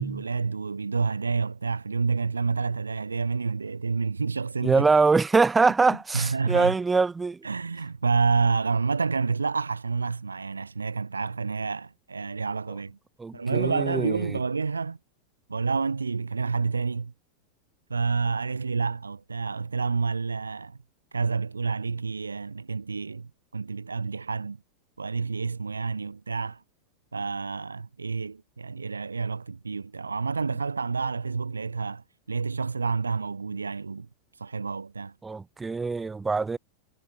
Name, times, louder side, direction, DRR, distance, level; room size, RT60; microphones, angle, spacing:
voice 1, 0.0-4.9 5.9-6.7 7.4-13.0 13.3-15.0 15.5-17.1 17.9-20.8 21.1-24.6 25.0-26.6 27.1-34.1 34.4-35.1, right 4 dB, 75° right, 0.7 m, -29 dB
voice 2, 4.6-7.4 13.2-14.2 35.2-36.6, right 4 dB, 10° right, 0.7 m, -23 dB
figure-of-eight pair, 90°, 0 cm